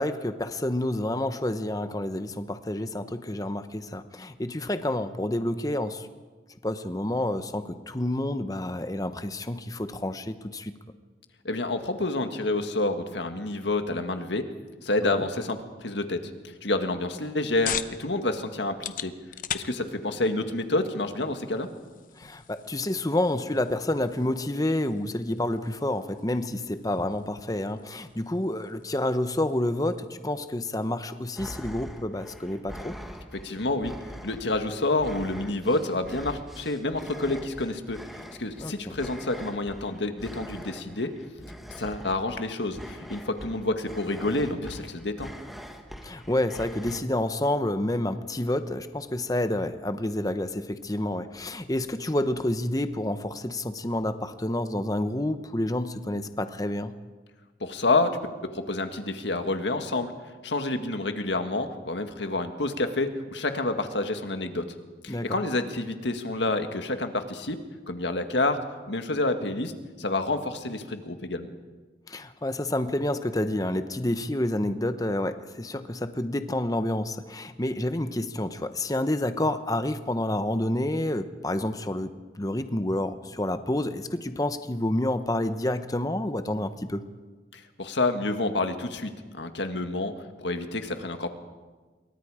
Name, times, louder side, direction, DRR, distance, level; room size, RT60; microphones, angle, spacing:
voice 1, 0.0-6.1 6.6-10.7 15.0-15.2 22.2-33.0 38.6-38.9 46.0-56.9 65.1-65.4 72.1-87.1, left 1 dB, 20° left, 10 dB, 0.9 m, -29 dB
voice 2, 11.4-14.4 14.8-16.2 16.6-19.1 19.5-21.7 33.3-33.9 34.2-38.0 38.4-41.1 41.8-45.3 57.6-58.1 58.4-60.1 60.4-64.6 65.0-67.6 67.9-68.6 68.9-69.7 70.0-71.5 87.5-90.1 90.4-91.3, left 2 dB, 75° left, 7 dB, 1.8 m, -28 dB
sound 1, 17.0-32.1, left 9 dB, 45° left, 0.8 m, -42 dB
sound 2, 31.3-47.0, equal, ahead, 1.5 m, -43 dB
27.5 x 23.0 x 5.0 m, 1.3 s
head